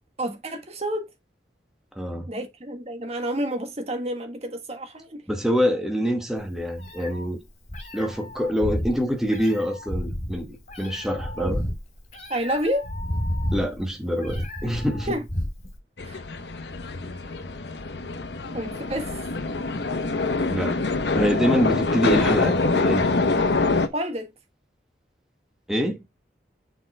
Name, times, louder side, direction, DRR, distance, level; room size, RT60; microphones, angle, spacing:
voice 1, 0.2-1.1 2.3-5.2 11.4-11.5 12.3-12.9 15.1-15.2 16.0-16.2 18.5-19.1 23.9-24.3, right 1 dB, 35° right, 1.4 m, -29 dB
voice 2, 1.9-2.3 5.3-7.4 7.9-11.6 13.5-15.2 20.5-20.8 21.1-23.1 25.7-26.0, equal, 5° right, 1.1 m, -25 dB
Meow, 6.4-15.8, equal, 40° left, 2.9 m, -31 dB
sound 1, 16.0-23.9, left 3 dB, 75° left, 0.9 m, -25 dB
6.8 x 4.7 x 4.2 m
head